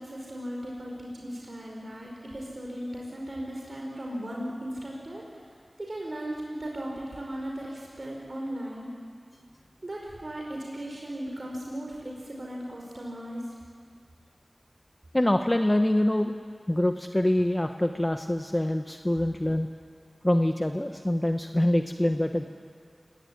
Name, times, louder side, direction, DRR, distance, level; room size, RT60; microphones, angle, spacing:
voice 1, 0.0-5.4 5.8-8.9 9.8-13.5, equal, 55° right, -1 dB, 5.0 m, -37 dB
voice 2, 15.1-16.3 16.7-19.7 20.2-22.5, left 1 dB, 20° left, 5 dB, 1.1 m, -25 dB
28.5 x 17.5 x 10.0 m, 2.1 s
wide cardioid pair, 55°, 0 cm